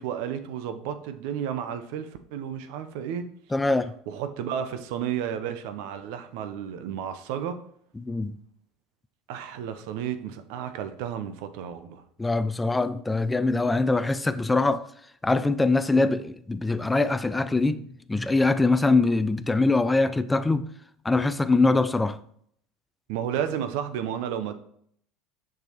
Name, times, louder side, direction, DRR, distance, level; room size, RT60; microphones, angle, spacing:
voice 1, 0.0-3.3 4.1-7.6 9.3-12.0 23.1-24.5, right 9 dB, 65° right, 0.6 m, -32 dB
voice 2, 3.5-3.9 8.1-8.3 12.2-14.8 15.2-20.7 21.0-22.2, left 3 dB, 10° left, 0.4 m, -23 dB
6.8 x 6.1 x 2.9 m
hypercardioid pair, 80°, 0 cm